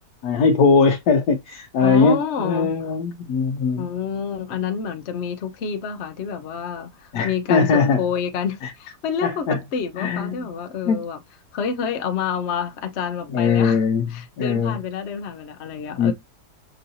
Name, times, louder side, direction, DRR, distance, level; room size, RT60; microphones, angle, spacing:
voice 1, 0.2-3.8 7.1-8.0 8.6-8.7 9.2-9.6 10.0-10.4 10.9-11.0 13.3-14.1 14.4-14.8 16.0-16.1, left 5 dB, 75° left, 1.1 m, -20 dB
voice 2, 1.8-2.7 3.8-11.2 11.5-13.8 14.1-16.1, left 7 dB, 55° left, 0.8 m, -28 dB
5.5 x 2.7 x 2.6 m
omnidirectional pair, 1.8 m